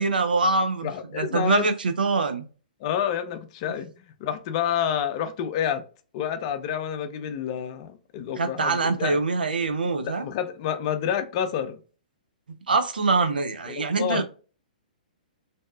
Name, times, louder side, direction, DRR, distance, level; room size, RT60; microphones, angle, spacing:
voice 1, 0.0-2.5 8.4-10.2 12.7-14.2, right 4 dB, 85° right, 0.5 m, -24 dB
voice 2, 0.8-1.7 2.8-3.9 4.2-5.8 6.1-9.2 10.0-11.8 13.7-14.2, left 9 dB, 45° left, 0.5 m, -28 dB
2.7 x 2.3 x 2.2 m
hypercardioid pair, 125°, 5 cm